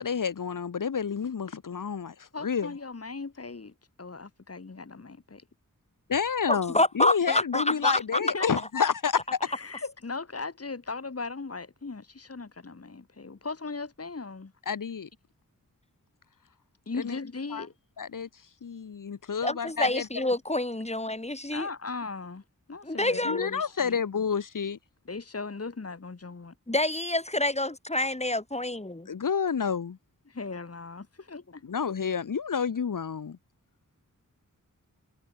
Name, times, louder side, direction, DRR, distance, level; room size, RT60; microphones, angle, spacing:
voice 1, 0.0-2.7 6.1-9.4 14.7-15.1 17.0-17.2 17.5-17.6 18.0-18.3 18.6-20.1 23.2-24.8 29.1-30.0 31.6-33.4, left 6 dB, 75° left, 1.6 m, -29 dB
voice 2, 2.3-3.7 4.0-5.4 8.2-8.5 9.4-14.5 16.9-17.7 21.5-22.4 22.7-24.0 25.0-26.5 30.3-31.6, left 4 dB, 45° left, 2.7 m, -38 dB
voice 3, 6.5-8.0 19.4-21.7 22.8-23.5 26.7-29.1, left 1 dB, 20° left, 4.6 m, -27 dB
cardioid pair, 50°, 33 cm